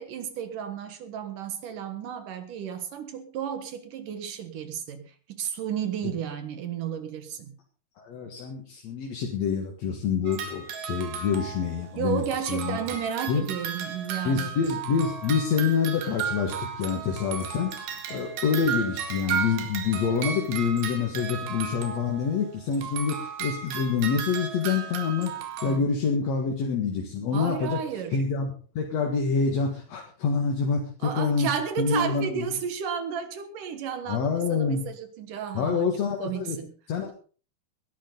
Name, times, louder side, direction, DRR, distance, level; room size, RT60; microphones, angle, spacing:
voice 1, 0.0-7.6 12.0-14.5 25.6-25.8 27.3-28.2 31.0-36.7, right 8 dB, 60° right, 9 dB, 2.7 m, -33 dB
voice 2, 8.0-12.8 13.3-13.5 14.2-25.3 25.6-27.8 28.1-28.5 28.7-31.5 31.8-32.5 34.1-34.9 35.5-36.6 36.9-37.1, left 5 dB, 50° left, 1 dB, 2.5 m, -27 dB
sound 1, 10.3-12.0 12.2-22.5 22.7-25.8, right 7 dB, 85° right, 4.1 m, -34 dB
20.0 x 11.5 x 3.9 m, 0.39 s
omnidirectional pair, 4.7 m